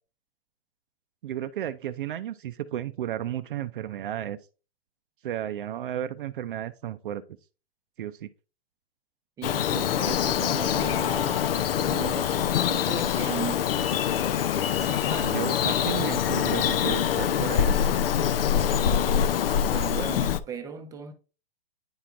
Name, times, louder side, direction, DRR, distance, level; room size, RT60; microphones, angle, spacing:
voice 1, 1.2-4.4 5.2-7.2 8.0-8.3 15.3-18.1, right 11 dB, 55° right, 0.5 m, -33 dB
Bird vocalization bird call bird song, 9.4-20.4, left 9 dB, 65° left, 0.6 m, -25 dB
voice 2, 9.4-13.7 14.7-15.4 19.7-21.1, right 6 dB, 10° right, 0.6 m, -37 dB
9.4 x 4.4 x 2.5 m
hypercardioid pair, 135°, 31 cm